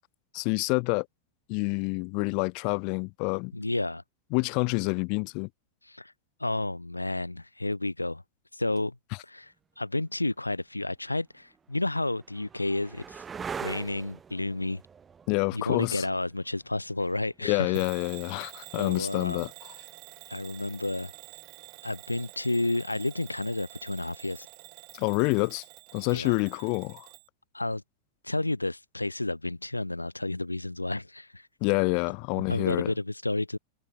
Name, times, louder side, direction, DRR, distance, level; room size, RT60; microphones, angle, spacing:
voice 1, 0.3-1.0 1.5-3.5 4.3-5.5 15.3-16.0 17.4-19.5 24.9-25.6 25.9-27.1 31.6-32.9, left 36 dB, 45° left, 1.7 m, -27 dB
voice 2, 3.5-4.0 5.8-6.1 6.4-8.2 8.5-8.9 9.2-13.2 13.6-14.8 15.5-17.8 18.8-19.4 20.3-21.1 21.8-24.5 26.1-26.4 27.5-27.8 28.2-31.5 32.4-33.6, left 2 dB, 85° left, 1.3 m, -31 dB
sound 1, 10.2-10.3 11.1-18.8 21.1-21.6, right 6 dB, 20° right, 3.8 m, -44 dB
Bell / Alarm, 17.7-27.3, right 40 dB or more, 45° right, 2.0 m, -48 dB
figure-of-eight pair, 90°, 0 cm